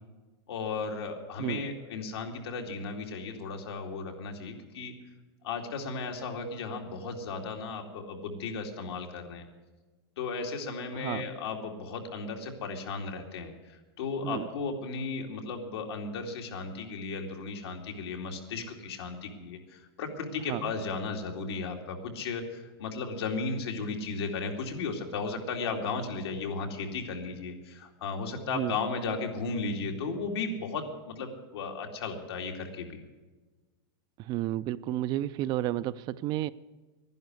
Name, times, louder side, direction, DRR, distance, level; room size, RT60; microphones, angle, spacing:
voice 1, 0.5-4.9 5.4-9.5 10.2-33.0, left 4 dB, 85° left, 2 dB, 2.6 m, -35 dB
voice 2, 10.9-11.3 14.2-14.5 20.5-20.7 28.5-28.8 34.2-36.5, right 14 dB, 35° right, 16 dB, 0.4 m, -31 dB
11.5 x 10.5 x 9.6 m, 1.2 s
supercardioid pair, 145°, 13 cm